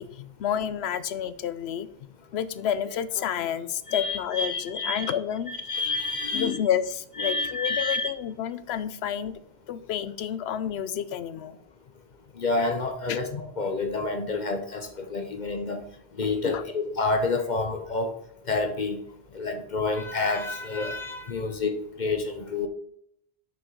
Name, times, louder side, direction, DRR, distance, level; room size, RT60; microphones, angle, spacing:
voice 1, 0.0-1.9 2.3-5.5 6.3-9.3 9.7-11.6 13.1-13.2 16.4-16.6 21.4-21.5, left 9 dB, 80° left, 14 dB, 0.9 m, -30 dB
voice 2, 3.9-5.1 5.5-6.6 7.2-8.1 12.4-15.8 16.2-18.1 18.5-19.0 19.3-22.7, left 3 dB, 45° left, 6 dB, 0.9 m, -29 dB
6.3 x 6.2 x 4.6 m, 0.70 s
omnidirectional pair, 1.1 m